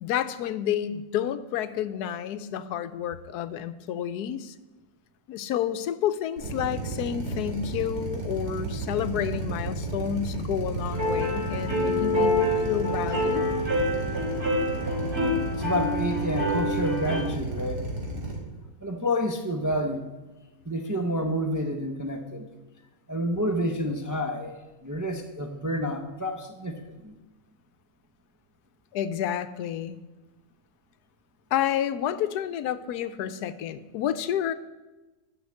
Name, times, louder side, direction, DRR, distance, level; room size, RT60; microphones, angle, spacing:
voice 1, 0.0-4.5 5.3-13.4 28.9-30.0 31.5-34.5, left 10 dB, 80° left, 13 dB, 1.1 m, -30 dB
Drill, 6.4-18.4, right 3 dB, 80° right, 2.6 m, -33 dB
sound 1, 10.9-17.2, left 1 dB, 40° right, 3.1 m, -27 dB
voice 2, 15.6-17.9 18.8-20.1 20.7-22.5 23.1-24.5 24.8-27.2, equal, 20° right, 4 dB, 0.5 m, -29 dB
10.5 x 6.5 x 7.7 m, 1.1 s
omnidirectional pair, 1.7 m